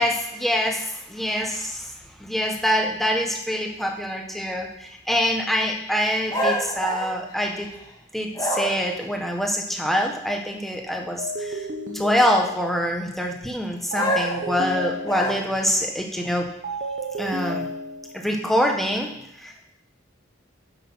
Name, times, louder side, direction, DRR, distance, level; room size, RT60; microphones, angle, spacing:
voice 1, 0.0-1.9 2.2-7.7 8.1-11.7 11.9-16.5 17.2-17.7 18.2-19.1 19.4-19.5, equal, ahead, 1 dB, 1.4 m, -25 dB
sound 1, 6.3-7.9 8.3-9.0 13.9-15.7, equal, 20° left, 2.1 m, -27 dB
sound 2, 11.2-12.9 13.9-15.6 16.6-18.3, right 1 dB, 40° right, 1.2 m, -32 dB
10.5 x 6.7 x 5.7 m, 0.77 s
head